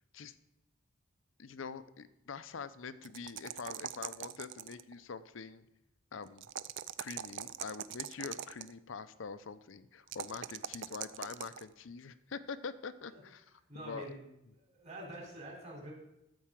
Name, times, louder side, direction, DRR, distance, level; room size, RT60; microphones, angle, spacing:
voice 1, 1.4-5.7 6.1-6.5 7.0-14.1, left 5 dB, 65° left, 13 dB, 0.6 m, -45 dB
sound 1, 3.0-4.9 6.4-8.7 10.1-11.6, right 11 dB, 65° right, 0.4 m, -42 dB
voice 2, 13.7-14.2 14.5-15.9, right 1 dB, 35° right, -1 dB, 3.4 m, -46 dB
13.0 x 4.7 x 7.4 m, 0.86 s
head